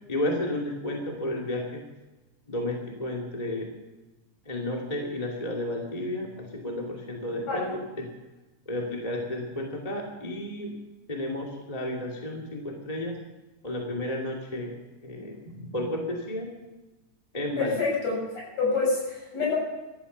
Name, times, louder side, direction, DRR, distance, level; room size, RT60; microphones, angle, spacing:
voice 1, 0.1-1.8 2.5-3.7 4.5-7.7 8.0-8.1 8.7-10.7 11.1-13.2 13.6-14.7 15.0-16.5 17.3-17.8, left 1 dB, 15° left, 0 dB, 2.3 m, -32 dB
voice 2, 17.6-18.2 18.6-19.6, left 4 dB, 55° left, -3 dB, 8.3 m, -26 dB
16.0 x 13.5 x 6.9 m, 1.1 s
omnidirectional pair, 3.7 m